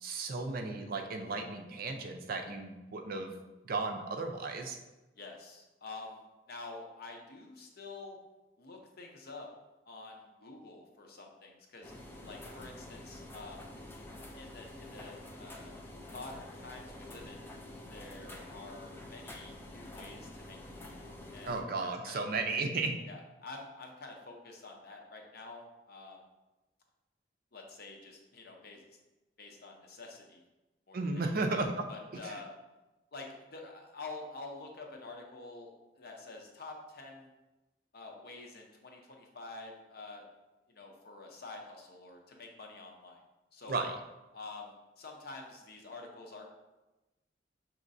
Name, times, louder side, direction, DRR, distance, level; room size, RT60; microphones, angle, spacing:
voice 1, 0.0-3.3 3.6-4.8 21.5-22.9 30.9-31.8 32.2-32.4 43.7-43.9, right 3 dB, 55° right, 4 dB, 0.5 m, -34 dB
voice 2, 5.2-6.2 6.5-8.2 8.6-9.5 9.9-11.9 12.2-13.6 14.3-17.5 17.9-21.0 21.3-21.5 21.8-22.2 23.1-26.2 27.5-28.8 29.4-30.4 30.9-31.3 31.9-32.5 33.1-37.3 37.9-40.2 40.7-43.2 43.5-43.8 44.3-46.5, left 3 dB, 60° left, 2 dB, 0.7 m, -48 dB
sound 1, 11.8-21.6, left 1 dB, 10° left, 0.4 m, -48 dB
6.2 x 2.9 x 2.6 m, 1.0 s
head